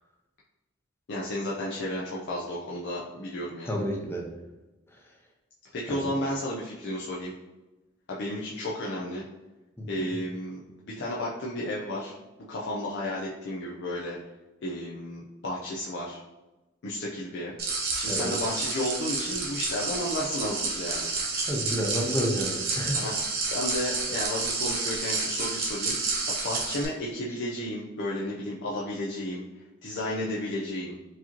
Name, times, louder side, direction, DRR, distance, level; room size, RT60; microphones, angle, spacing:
voice 1, 1.1-3.8 5.7-7.3 8.1-9.2 9.9-12.2 12.5-14.2 14.6-16.2 16.8-17.5 17.9-21.1 22.9-23.2 23.4-31.0, left 1 dB, 60° left, -5 dB, 0.5 m, -33 dB
voice 2, 3.7-4.3 4.9-5.0 5.9-6.1 10.0-10.1 18.1-18.3 21.5-23.0, equal, 15° left, 0 dB, 0.7 m, -30 dB
sound 1, 17.6-26.8, right 4 dB, 50° right, 0.9 m, -30 dB
4.7 x 2.9 x 2.9 m, 1.1 s
head